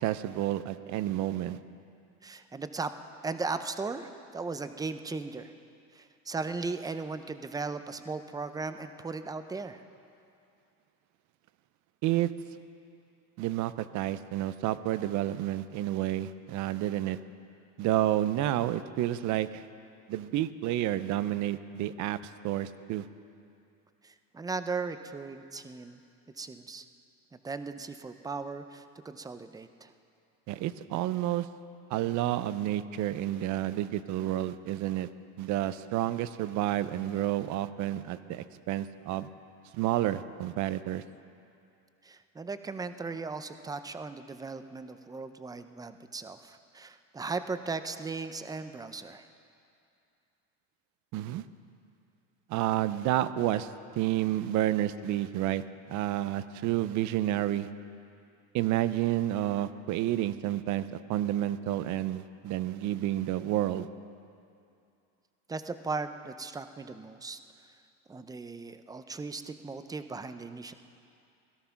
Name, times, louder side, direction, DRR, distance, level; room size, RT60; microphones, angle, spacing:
voice 1, 0.0-1.6 12.0-12.3 13.4-17.2 17.8-19.7 20.1-22.2 22.4-23.1 30.5-31.5 31.9-35.1 35.4-39.3 39.7-41.0 51.1-51.4 52.5-53.7 54.0-57.7 58.5-63.9, right 13 dB, 60° right, 14 dB, 0.6 m, -30 dB
voice 2, 2.2-2.9 3.2-5.5 5.9-9.8 24.0-26.0 26.4-26.9 27.4-29.9 42.0-49.3 65.5-67.4 68.1-70.7, right 4 dB, 10° right, 10 dB, 0.5 m, -37 dB
17.0 x 12.5 x 5.8 m, 2.5 s
cardioid pair, 125°, 34 cm